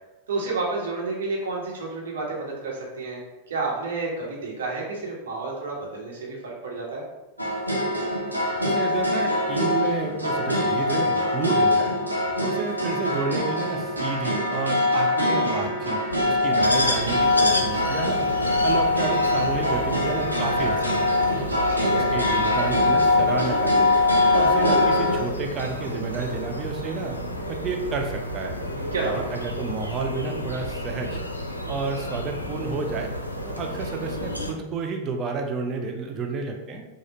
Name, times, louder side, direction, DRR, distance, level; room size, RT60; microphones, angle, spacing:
voice 1, 0.3-3.2 3.5-7.0 21.7-22.0 28.8-29.2, right 3 dB, 65° right, -3 dB, 1.4 m, -30 dB
sound 1, 7.4-25.2, left 2 dB, 90° right, 0.8 m, -23 dB
voice 2, 8.6-11.9 12.4-18.3 18.6-21.4 21.9-23.9 24.3-27.2 27.5-28.6 29.0-31.2 31.7-33.1 33.4-36.8, right 4 dB, 30° right, 3 dB, 0.7 m, -31 dB
sound 2, 16.6-34.5, equal, 85° left, 0.5 m, -32 dB
4.9 x 2.6 x 4.0 m, 1.0 s
figure-of-eight pair, 90°, 0 cm